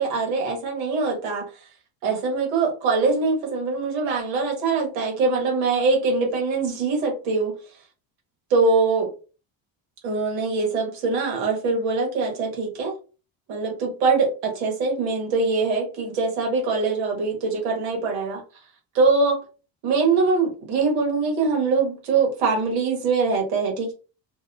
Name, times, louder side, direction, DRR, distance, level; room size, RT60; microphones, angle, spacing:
voice 1, 0.0-1.5 2.0-7.5 8.5-9.1 10.0-13.0 13.5-18.4 18.9-19.4 19.8-23.9, right 4 dB, 90° right, 1.1 m, -23 dB
2.4 x 2.1 x 2.5 m
cardioid pair, 95°, 49 cm